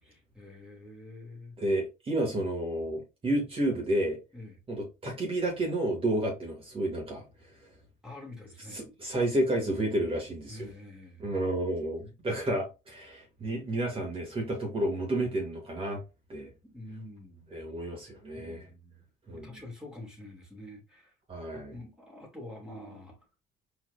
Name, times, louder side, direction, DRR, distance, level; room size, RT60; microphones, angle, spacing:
voice 1, 0.0-1.6 4.3-4.6 8.0-8.8 10.5-11.3 16.7-17.5 18.3-19.0 19.3-21.1 21.5-23.2, left 1 dB, 5° right, 2.3 m, -46 dB
voice 2, 1.6-4.2 4.7-7.2 8.7-10.7 11.2-16.0 16.3-16.5 17.5-18.7 19.3-19.6 21.3-21.7, right 1 dB, 35° right, 2.3 m, -31 dB
4.5 x 4.4 x 2.6 m
cardioid pair, 110°, 17 cm